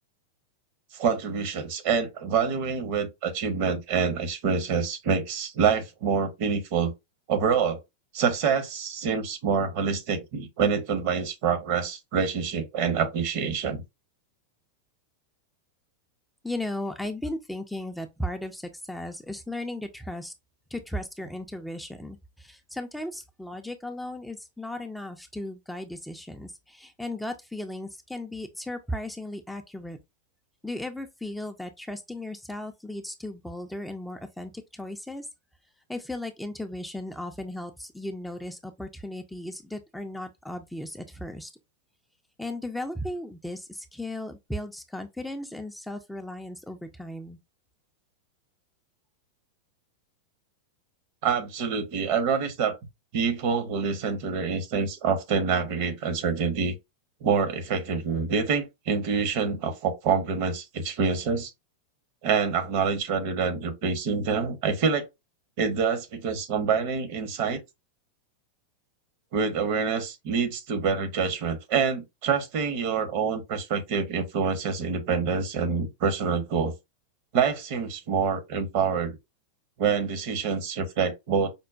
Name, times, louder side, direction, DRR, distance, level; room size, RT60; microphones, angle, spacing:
voice 1, 0.9-6.9 7.3-7.8 8.1-13.8 51.2-52.8 53.1-56.7 57.2-61.5 62.2-65.1 65.6-67.6 69.3-76.7 77.3-79.2 79.8-81.5, right 6 dB, 50° right, 0.9 m, -26 dB
voice 2, 16.4-20.3 20.7-30.0 30.6-35.3 35.9-41.5 42.4-47.4, left 1 dB, 5° left, 0.4 m, -36 dB
5.2 x 2.1 x 2.4 m
figure-of-eight pair, 90°, 0 cm